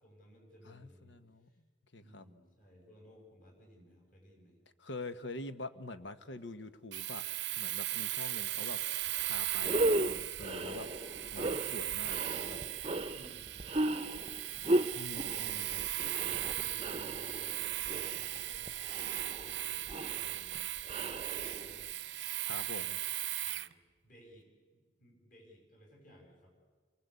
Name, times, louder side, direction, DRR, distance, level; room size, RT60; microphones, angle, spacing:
voice 1, 0.0-1.6 2.0-4.6 12.8-14.1 14.5-16.1 16.3-22.2 23.4-26.5, equal, 45° left, 1 dB, 7.2 m, -59 dB
voice 2, 0.7-1.5 1.9-2.2 4.8-7.3 7.6-10.9 11.3-12.6 15.0-15.8 22.4-23.0, left 2 dB, 70° left, 10 dB, 1.3 m, -45 dB
Domestic sounds home sounds, 6.9-23.7, right 14 dB, 65° right, 0.7 m, -38 dB
sound 1, 9.1-9.2 9.5-21.9, right 1 dB, 30° right, 0.8 m, -36 dB
28.5 x 23.5 x 8.3 m, 1.5 s
head